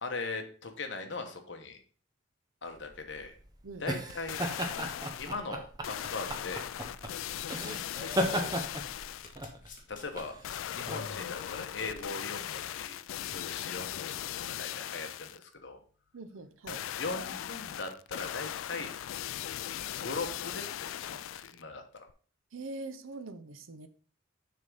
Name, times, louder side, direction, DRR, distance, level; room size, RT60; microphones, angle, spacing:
voice 1, 0.0-1.8 2.6-3.4 3.8-4.4 5.2-6.7 8.0-8.7 9.9-10.4 10.7-15.8 17.0-18.9 20.0-22.1, left 3 dB, 60° left, 5 dB, 1.1 m, -40 dB
sound 1, 2.8-12.0, equal, 20° right, 0.8 m, -36 dB
voice 2, 3.6-4.0 16.1-16.8 22.5-23.9, right 3 dB, 85° right, 11 dB, 0.7 m, -43 dB
sound 2, 4.1-5.4 5.8-9.4 10.4-15.4 16.7-21.6 22.1-22.2, left 11 dB, 85° left, 0.3 m, -39 dB
Domestic sounds home sounds, 9.1-13.1 13.5-13.7 13.9-14.0, left 4 dB, 40° left, 1.5 m, -55 dB
6.6 x 3.5 x 5.4 m, 0.42 s
head